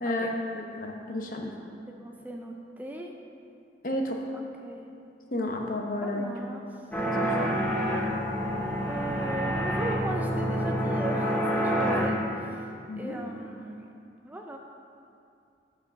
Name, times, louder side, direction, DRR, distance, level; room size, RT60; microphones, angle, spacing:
voice 1, 0.0-1.5 3.8-4.2 5.3-6.3 7.1-7.5 9.4-9.5 12.9-13.2, left 1 dB, 50° left, 1 dB, 0.9 m, -32 dB
voice 2, 2.0-3.1 4.3-4.9 6.0-6.8 8.9-12.7 13.0-13.9 14.2-14.6, right 1 dB, 10° right, 1 dB, 0.4 m, -38 dB
sound 1, 6.9-12.1, equal, 10° left, 1.0 m, -27 dB
7.8 x 5.1 x 6.4 m, 2.5 s
head